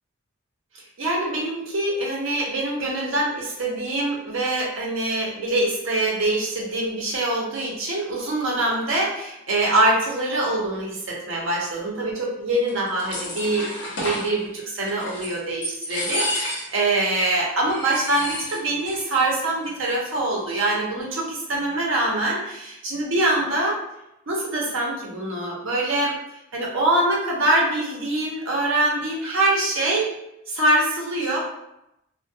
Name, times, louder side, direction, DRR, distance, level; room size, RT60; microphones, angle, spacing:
voice 1, 1.0-23.8 24.3-26.1 26.5-30.1 30.5-31.4, right 2 dB, 75° right, -3 dB, 0.7 m, -24 dB
sound 1, 12.7-14.3 14.9-15.4 15.6-16.8 17.2-17.3 17.7-19.0 19.3-19.4 19.6-20.2, left 1 dB, 55° left, 0.8 m, -30 dB
2.3 x 2.1 x 2.6 m, 0.85 s
head